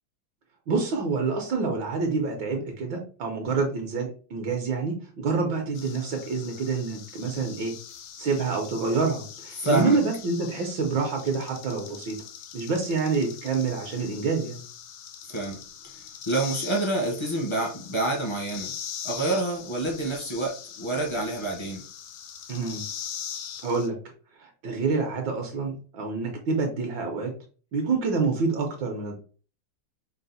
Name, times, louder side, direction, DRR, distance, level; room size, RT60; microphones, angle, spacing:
voice 1, 0.7-7.7 8.2-12.2 12.5-14.6 22.5-22.8 23.6-24.0 24.4-27.3 27.7-29.1, right 4 dB, 70° right, 2 dB, 1.4 m, -27 dB
sound 1, 5.7-23.9, left 8 dB, 75° left, 0.9 m, -41 dB
voice 2, 9.6-10.0 15.3-15.6 16.3-18.7 19.0-21.8, right 2 dB, 30° left, -1 dB, 0.5 m, -27 dB
4.7 x 2.0 x 4.0 m, 0.38 s
omnidirectional pair, 2.2 m